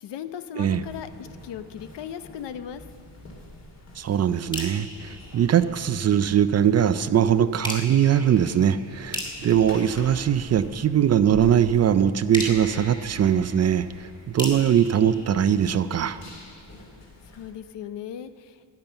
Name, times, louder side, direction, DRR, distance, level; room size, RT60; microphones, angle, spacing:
voice 1, 0.0-2.9 17.3-18.6, left 9 dB, 80° left, 11 dB, 0.8 m, -37 dB
sound 1, 0.7-17.5, left 1 dB, 40° left, 2.5 m, -46 dB
voice 2, 4.0-16.2, right 9 dB, 40° right, 12 dB, 0.4 m, -21 dB
sound 2, 4.5-6.2 7.6-11.0 12.3-16.2, left 1 dB, 10° left, 2.3 m, -38 dB
14.5 x 10.5 x 6.8 m, 2.3 s
wide cardioid pair, 170°, 41 cm